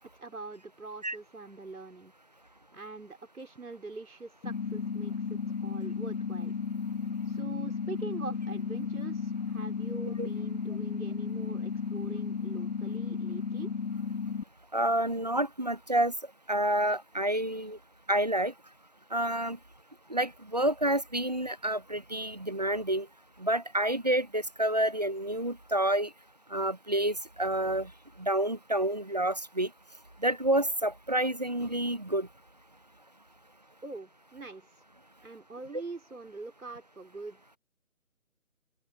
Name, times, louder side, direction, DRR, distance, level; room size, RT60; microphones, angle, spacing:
voice 1, 0.0-2.1 2.4-6.5 7.2-13.7 33.8-34.8 35.2-37.6, right 3 dB, 80° right, 4.7 m, -44 dB
sound 1, 4.4-14.4, left 5 dB, 65° left, 1.7 m, -34 dB
voice 2, 14.7-16.1 16.5-17.8 18.1-18.5 19.1-19.6 20.1-23.1 23.4-26.1 26.5-27.9 28.2-29.7 30.2-32.3, right 1 dB, 30° right, 0.7 m, -28 dB
open air
figure-of-eight pair, 165°, 42 cm